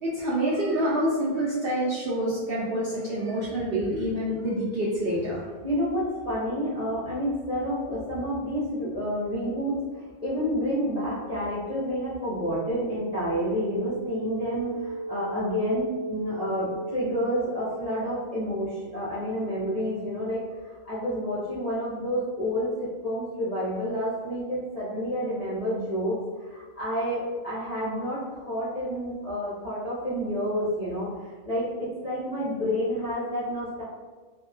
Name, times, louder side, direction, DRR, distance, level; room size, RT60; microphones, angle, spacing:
voice 1, 0.0-5.4, right 1 dB, 65° right, -7 dB, 0.6 m, -27 dB
voice 2, 5.6-20.4 20.8-26.2 26.4-31.1 31.5-31.7 32.0-33.8, equal, 45° left, -10 dB, 0.5 m, -29 dB
sound 1, 12.3-17.3, right 2 dB, 20° right, 0.8 m, -35 dB
2.9 x 2.2 x 2.5 m, 1.4 s
omnidirectional pair, 1.4 m